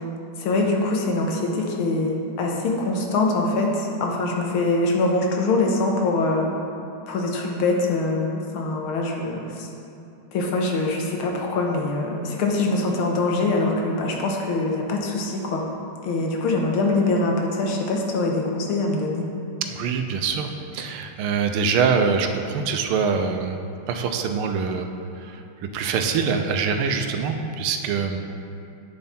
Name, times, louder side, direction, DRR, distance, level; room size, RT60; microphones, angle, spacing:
voice 1, 0.4-6.5 7.1-9.7 10.3-15.6 16.0-19.2, left 2 dB, 80° left, 1 dB, 1.8 m, -23 dB
voice 2, 19.7-23.5 23.9-24.8 25.3-25.4 25.7-28.2, right 5 dB, 90° right, 6 dB, 1.5 m, -24 dB
8.8 x 6.9 x 4.2 m, 2.6 s
omnidirectional pair, 2.3 m